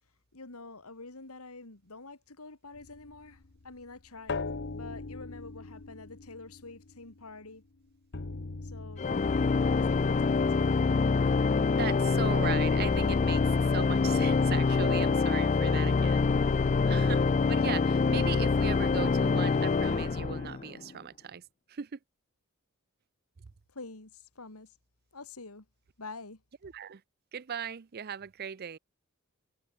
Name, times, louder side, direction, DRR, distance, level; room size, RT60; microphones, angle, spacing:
voice 1, 0.3-4.4 4.7-7.6 8.6-9.3 9.7-10.9 23.7-24.8 25.1-25.7 26.0-26.4, left 3 dB, 85° left, 2.7 m, -47 dB
sound 1, 2.7-7.6 8.1-11.4, left 3 dB, 55° left, 1.0 m, -42 dB
Organ, 9.0-20.8, left 4 dB, 35° left, 0.4 m, -25 dB
voice 2, 11.7-13.4 13.7-16.3 16.9-21.4 21.7-22.0 26.6-27.0 27.3-28.8, right 7 dB, 45° right, 0.5 m, -38 dB
head